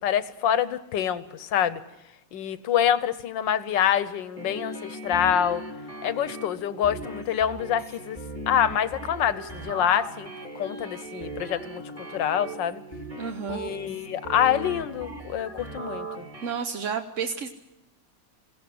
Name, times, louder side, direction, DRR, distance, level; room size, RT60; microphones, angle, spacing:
voice 1, 0.0-1.8 2.3-5.6 6.0-8.2 8.5-10.3 10.5-11.8 12.1-12.8 13.5-16.3, left 9 dB, 80° left, 13 dB, 1.6 m, -26 dB
sound 1, 4.4-16.5, right 1 dB, 15° right, 2.7 m, -38 dB
voice 2, 13.2-13.6 16.4-17.5, right 6 dB, 50° right, 6 dB, 1.0 m, -31 dB
21.5 x 16.5 x 7.8 m, 0.97 s
omnidirectional pair, 2.0 m